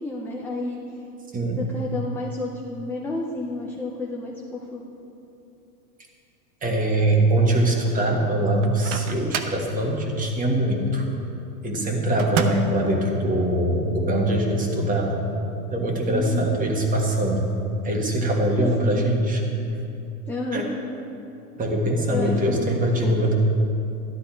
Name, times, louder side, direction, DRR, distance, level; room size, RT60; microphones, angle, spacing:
voice 1, 0.0-0.8 1.5-4.8 16.1-16.5 18.8-19.3 20.3-20.8 22.1-23.3, left 2 dB, 5° left, -3 dB, 0.5 m, -31 dB
voice 2, 1.3-1.6 6.6-11.0 11.6-15.2 15.7-17.4 17.8-19.4 20.5-20.6 21.6-23.4, right 1 dB, 15° right, 1 dB, 1.6 m, -22 dB
Microwave oven, 8.6-9.7 12.2-12.8, right 6 dB, 50° right, 1.0 m, -29 dB
12.5 x 12.0 x 4.4 m, 2.8 s
supercardioid pair, 145°, 46 cm